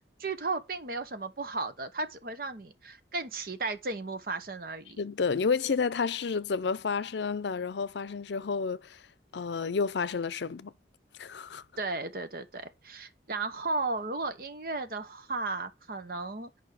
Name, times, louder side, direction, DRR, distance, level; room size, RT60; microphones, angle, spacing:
voice 1, 0.0-5.0 11.8-16.6, right 3 dB, 55° right, 0.9 m, -35 dB
voice 2, 5.0-9.0 9.3-10.7 11.2-11.6, left 5 dB, 80° left, 0.5 m, -30 dB
8.9 x 5.1 x 4.8 m
head